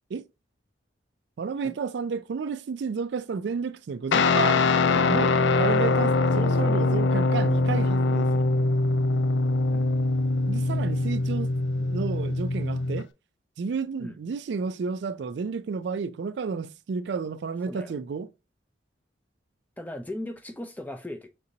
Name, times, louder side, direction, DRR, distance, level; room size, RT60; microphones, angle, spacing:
voice 1, 1.4-4.6 4.9-8.4 10.5-11.5 11.8-13.1 13.6-18.3, right 5 dB, 65° right, 0.3 m, -31 dB
Guitar, 4.1-13.0, left 3 dB, 70° left, 0.4 m, -23 dB
voice 2, 4.3-5.4 6.2-6.8 9.7-9.9 14.0-14.1 17.7-17.9 19.8-21.3, left 1 dB, 10° left, 0.4 m, -39 dB
6.0 x 2.7 x 2.7 m
head